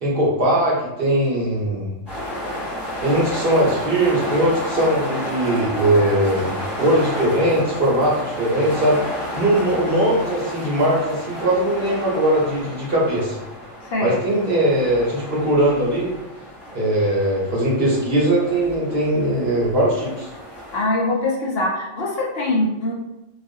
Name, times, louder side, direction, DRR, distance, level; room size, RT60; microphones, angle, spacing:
voice 1, 0.0-1.9 3.0-9.0 9.3-13.4 14.0-16.1 16.7-20.3, right 1 dB, 50° right, -5 dB, 0.9 m, -20 dB
sound 1, 2.1-20.8, equal, 10° left, 1.1 m, -31 dB
voice 2, 13.9-14.2 20.7-22.9, left 2 dB, 60° left, -2 dB, 0.7 m, -22 dB
2.4 x 2.4 x 2.6 m, 0.95 s
omnidirectional pair, 1.3 m